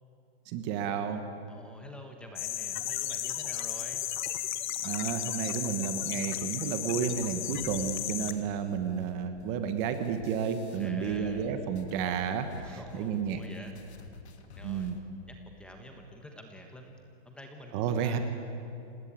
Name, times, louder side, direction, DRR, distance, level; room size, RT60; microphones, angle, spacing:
voice 1, 0.5-1.2 4.8-13.4 14.6-15.0 17.7-18.2, right 7 dB, 25° right, 8 dB, 1.2 m, -31 dB
voice 2, 1.5-4.0 10.8-11.5 12.6-13.8 14.5-14.9 15.3-16.9 17.2-18.2, left 1 dB, 5° left, 3 dB, 1.2 m, -48 dB
sound 1, 2.4-8.3, left 12 dB, 45° left, 1.3 m, -34 dB
sound 2, 7.0-11.5 11.8-15.0, left 4 dB, 90° left, 2.7 m, -50 dB
26.5 x 19.0 x 8.8 m, 2.7 s
hypercardioid pair, 170°, 32 cm